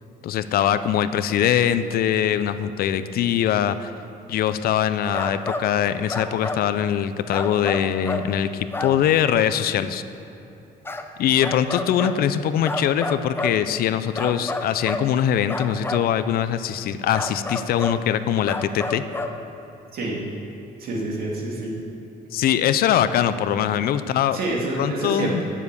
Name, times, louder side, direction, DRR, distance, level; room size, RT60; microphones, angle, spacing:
voice 1, 0.2-3.9 4.3-10.0 11.2-19.0 22.3-24.4 24.8-25.4, left 10 dB, 65° left, 13 dB, 0.5 m, -22 dB
sound 1, 5.1-5.7 6.1-6.6 7.3-8.3 8.7-9.0 10.9-11.0 11.4-12.2 12.6-13.6 14.1-15.1 15.5-16.1 17.1-18.0 18.5-19.4, left 2 dB, 15° left, 0.7 m, -29 dB
voice 2, 20.8-21.7 24.3-25.4, right 2 dB, 65° right, -2 dB, 2.5 m, -27 dB
10.5 x 7.3 x 6.8 m, 2.9 s
cardioid pair, 110°, 17 cm